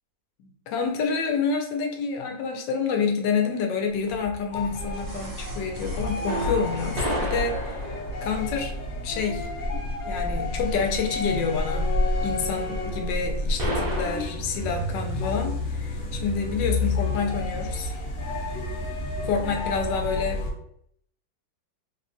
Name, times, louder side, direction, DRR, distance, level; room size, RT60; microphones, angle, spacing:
voice 1, 0.4-7.8 8.2-8.8 9.0-9.5 10.1-17.9 19.2-20.5, left 5 dB, 80° left, 3 dB, 1.3 m, -28 dB
sound 1, 4.1-7.8 9.1-9.2, left 2 dB, 75° right, 1.3 m, -35 dB
sound 2, 4.5-20.5, left 2 dB, 60° left, 0.9 m, -31 dB
sound 3, 6.3-14.1, equal, 60° right, 1.2 m, -30 dB
3.3 x 2.2 x 2.5 m, 0.70 s
omnidirectional pair, 1.9 m